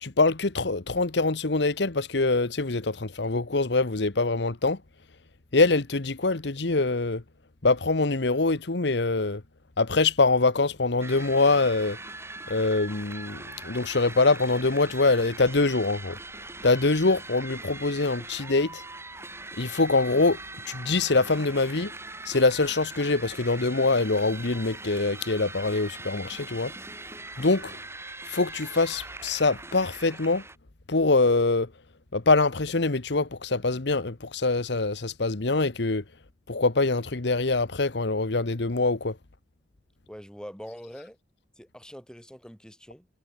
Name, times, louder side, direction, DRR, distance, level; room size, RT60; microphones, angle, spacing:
voice 1, 0.0-4.8 5.5-7.2 7.6-9.4 9.8-12.0 12.5-16.2 16.6-18.8 19.6-20.4 20.6-21.9 22.2-26.7 27.4-27.8 28.3-30.4 30.9-31.7 32.1-36.0 36.5-39.2, left 3 dB, 70° left, 1.2 m, -24 dB
sound 1, 11.0-30.6, right 2 dB, 15° right, 7.5 m, -41 dB
voice 2, 40.1-41.2 41.6-43.1, equal, 5° left, 5.7 m, -44 dB
head